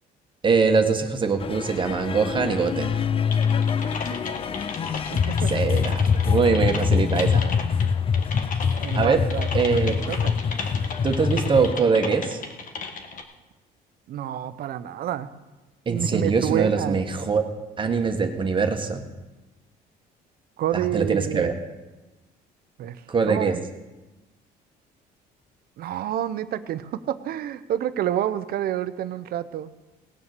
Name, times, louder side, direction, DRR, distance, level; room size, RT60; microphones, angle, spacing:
voice 1, 0.4-3.0 5.5-7.4 8.9-9.2 9.5-9.9 11.0-12.4 15.8-17.4 17.8-19.0 20.7-21.5 23.1-23.5, right 5 dB, 30° right, 5 dB, 1.5 m, -23 dB
sound 1, 1.4-11.7, left 6 dB, 35° left, 0.5 m, -24 dB
Typing, 3.3-13.2, left 4 dB, 50° left, 1.5 m, -36 dB
voice 2, 3.8-4.6 5.1-5.5 8.8-10.3 14.1-15.3 15.9-17.0 20.6-21.5 22.8-23.6 25.8-29.7, right 11 dB, 65° right, 13 dB, 0.8 m, -29 dB
18.5 x 7.1 x 6.8 m, 1.1 s
cardioid pair, 110°, 17 cm